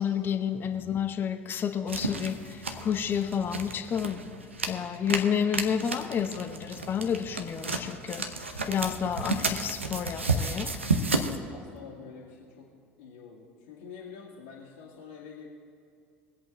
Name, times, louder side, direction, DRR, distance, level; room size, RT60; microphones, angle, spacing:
voice 1, 0.0-4.2 4.7-10.7, left 8 dB, 35° left, 6 dB, 0.8 m, -30 dB
sound 1, 0.6-1.2 2.2-2.3 2.5-4.2 6.4-6.5 6.8-7.4 8.7-10.4, left 2 dB, 20° right, 1.9 m, -53 dB
sound 2, 1.9-11.4, right 3 dB, 85° right, 0.8 m, -32 dB
voice 2, 11.5-12.7 13.0-15.5, left 6 dB, 65° left, -6 dB, 2.0 m, -46 dB
22.5 x 8.2 x 3.9 m, 2.5 s
figure-of-eight pair, 70°, 6 cm